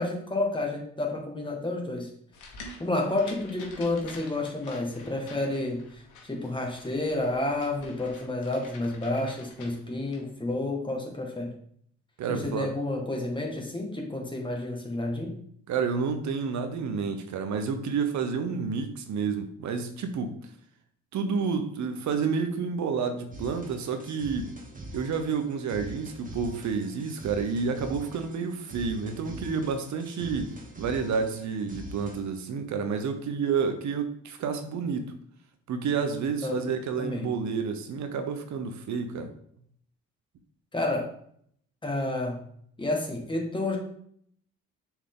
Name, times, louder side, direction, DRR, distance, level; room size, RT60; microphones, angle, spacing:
voice 1, 0.0-2.1 2.8-11.5 12.3-15.3 36.4-36.7 37.0-37.3 40.7-41.1 41.8-42.5 42.8-43.8, left 2 dB, 15° left, 0 dB, 1.9 m, -30 dB
sound 1, 2.3-10.2, left 3 dB, 90° left, 1.5 m, -49 dB
voice 2, 12.2-12.7 15.7-20.3 21.1-24.5 24.9-35.1 35.7-39.3, right 5 dB, 70° right, 7 dB, 0.9 m, -30 dB
sound 2, 23.3-32.2, right 1 dB, 25° right, 1.5 m, -43 dB
6.8 x 4.6 x 3.8 m, 0.64 s
cardioid pair, 90°, 30 cm